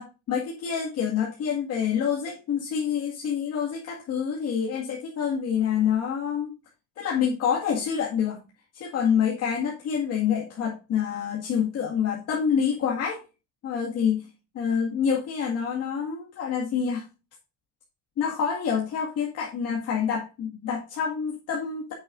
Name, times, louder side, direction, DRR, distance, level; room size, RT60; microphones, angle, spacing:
voice 1, 0.0-6.5 7.0-8.4 8.7-13.2 13.6-14.2 14.6-17.0 18.2-21.9, left 7 dB, 50° left, -2 dB, 2.0 m, -27 dB
9.4 x 7.8 x 2.6 m, 0.30 s
cardioid pair, 145°, 32 cm